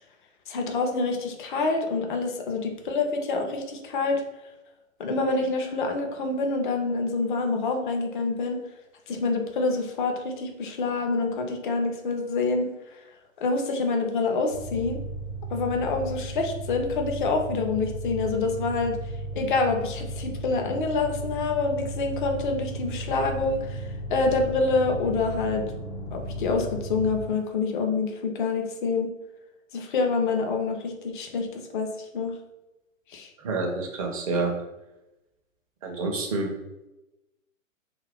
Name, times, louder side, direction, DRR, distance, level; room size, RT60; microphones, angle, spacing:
voice 1, 0.5-4.2 5.0-8.6 9.1-12.7 13.4-15.0 15.5-19.0 19.3-23.8 24.1-25.6 26.1-29.1 29.7-32.3 33.1-33.3, left 3 dB, 40° left, 3 dB, 0.4 m, -27 dB
sound 1, 14.5-27.3, right 1 dB, 65° left, 0.8 m, -35 dB
voice 2, 33.4-34.5 35.8-36.5, right 3 dB, 30° right, 1 dB, 0.5 m, -28 dB
2.4 x 2.1 x 3.4 m, 0.97 s
figure-of-eight pair, 115°, 40 cm